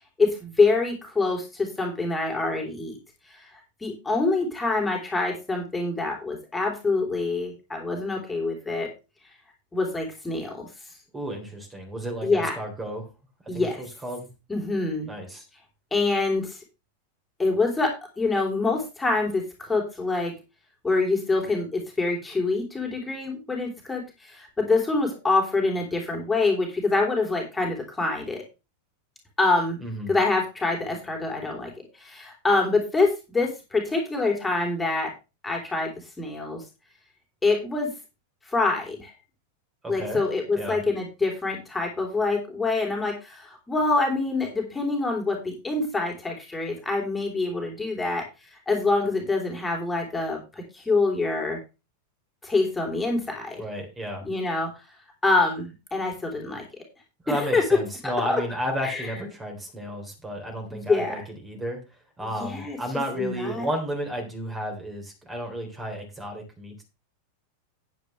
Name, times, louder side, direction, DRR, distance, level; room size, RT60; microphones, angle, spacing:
voice 1, 0.2-3.0 3.3-3.5 3.8-8.9 9.7-10.7 12.2-12.6 13.5-13.8 14.5-15.1 15.9-16.6 17.4-20.3 20.8-28.4 29.4-29.8 30.1-31.7 32.0-35.1 35.4-35.9 36.2-36.6 37.4-37.9 38.5-39.1 39.9-48.2 48.5-51.6 52.4-53.6 54.2-54.7 55.2-56.6 57.3-57.6 58.3-58.4 58.8-59.1 60.7-61.3 62.2-62.8 63.1-63.7, left 3 dB, 10° left, 0 dB, 3.5 m, -25 dB
voice 2, 11.1-13.1 13.4-14.3 15.1-15.5 29.8-30.1 39.8-40.2 40.6-40.8 53.6-54.3 57.2-61.8 62.2-66.8, equal, 15° right, 2 dB, 3.5 m, -32 dB
10.5 x 9.7 x 3.3 m, 0.28 s
figure-of-eight pair, 90°, 0 cm